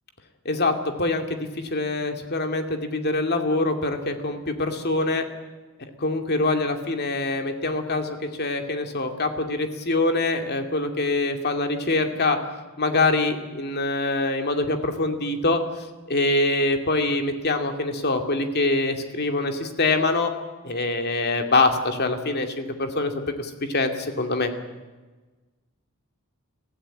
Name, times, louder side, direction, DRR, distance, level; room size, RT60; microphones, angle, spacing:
voice 1, 1.0-5.2 6.0-12.4 12.8-15.6 16.1-20.3 20.6-24.5, left 2 dB, 50° left, 5 dB, 2.6 m, -24 dB
24.0 x 15.5 x 9.1 m, 1.2 s
head